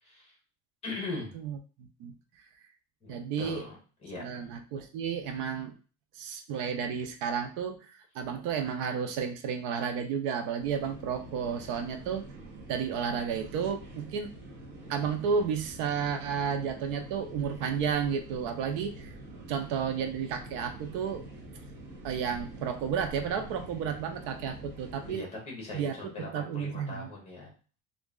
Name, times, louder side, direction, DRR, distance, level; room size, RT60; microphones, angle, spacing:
voice 1, 0.0-0.3 0.8-1.3 3.0-3.8 4.0-4.5 25.1-27.5, left 2 dB, 20° left, -1 dB, 1.1 m, -40 dB
voice 2, 1.3-2.1 3.1-3.6 4.2-5.7 6.1-12.2 12.7-14.3 14.9-19.1 19.5-21.3 22.0-25.2 25.7-25.9 26.3-27.1, right 7 dB, 70° right, 6 dB, 0.6 m, -32 dB
sound 1, 10.6-25.2, right 1 dB, 35° right, 1.0 m, -46 dB
3.1 x 2.5 x 3.6 m, 0.37 s
cardioid pair, 180°, 32 cm